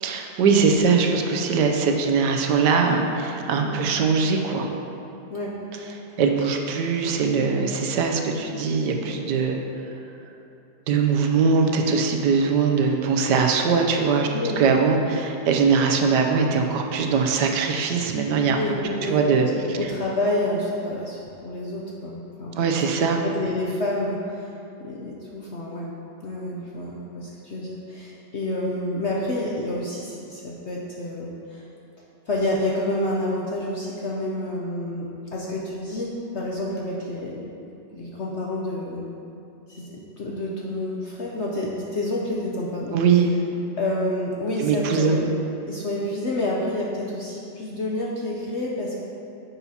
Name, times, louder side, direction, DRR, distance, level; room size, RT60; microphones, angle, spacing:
voice 1, 0.0-4.7 6.2-9.6 10.9-14.3 14.6-18.6 19.0-19.8 22.6-23.2 42.9-43.3 44.6-45.2, right 5 dB, 75° right, 3 dB, 1.3 m, -21 dB
voice 2, 18.5-19.2 19.6-22.6 23.2-24.5 24.8-25.9 26.2-31.6 32.3-37.4 37.9-39.1 39.7-43.0 43.8-45.3 45.7-49.0, left 1 dB, 60° left, -3 dB, 0.7 m, -29 dB
9.8 x 7.0 x 2.8 m, 2.8 s
omnidirectional pair, 1.9 m